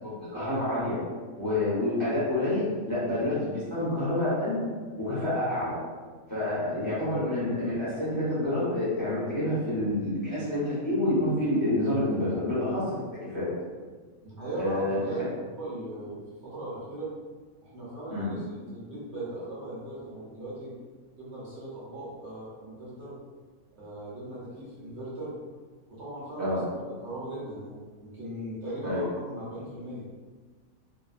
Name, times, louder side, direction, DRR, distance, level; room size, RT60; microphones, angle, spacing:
voice 1, 0.0-1.0 1.4-4.6 5.0-5.8 6.3-13.5 14.6-15.0 18.1-18.3 26.4-26.6 28.8-29.0, left 1 dB, 20° left, -11 dB, 0.6 m, -28 dB
voice 2, 14.2-15.2 15.6-17.1 17.6-20.7 21.2-23.2 23.8-25.4 25.9-30.1, right 1 dB, 60° right, -8 dB, 0.9 m, -39 dB
2.6 x 2.1 x 2.4 m, 1.5 s
omnidirectional pair, 1.5 m